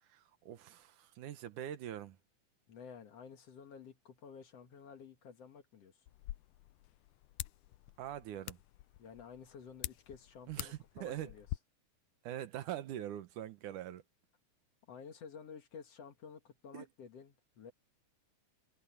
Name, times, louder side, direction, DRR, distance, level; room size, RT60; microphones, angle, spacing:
voice 1, 0.0-2.2 8.0-8.6 10.5-11.3 12.2-14.0 16.7-16.9, right 11 dB, 80° right, 2.7 m, -43 dB
voice 2, 2.7-6.0 9.0-11.5 14.9-17.7, left 6 dB, 55° left, 2.6 m, -52 dB
sound 1, 6.1-11.6, left 16 dB, 85° left, 2.1 m, -47 dB
omnidirectional pair, 3.5 m